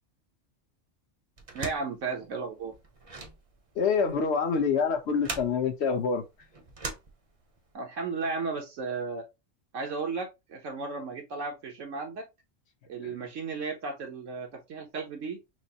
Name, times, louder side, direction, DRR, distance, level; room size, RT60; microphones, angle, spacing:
sound 1, 1.4-7.7, right 3 dB, 30° right, 0.7 m, -42 dB
voice 1, 1.5-2.7 7.7-9.2 9.7-12.3 12.9-15.4, right 4 dB, 75° right, 1.3 m, -34 dB
voice 2, 3.8-6.2 13.0-13.1, left 5 dB, 60° left, 1.1 m, -26 dB
6.1 x 2.0 x 2.8 m
omnidirectional pair, 1.3 m